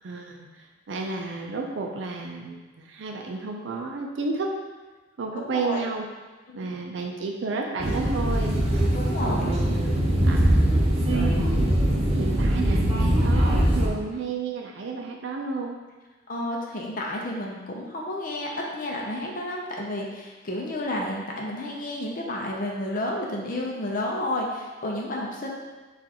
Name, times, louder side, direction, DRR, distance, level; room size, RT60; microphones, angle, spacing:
voice 1, 0.0-4.5 5.2-6.0 6.5-8.6 9.2-15.8, right 3 dB, 80° right, 1 dB, 0.4 m, -32 dB
voice 2, 5.3-5.8 6.5-6.6 8.9-9.5 16.3-25.5, left 1 dB, 50° left, -2 dB, 0.6 m, -31 dB
sound 1, 7.8-13.9, right 1 dB, 30° right, 0.6 m, -22 dB
5.9 x 2.5 x 2.9 m, 1.3 s
head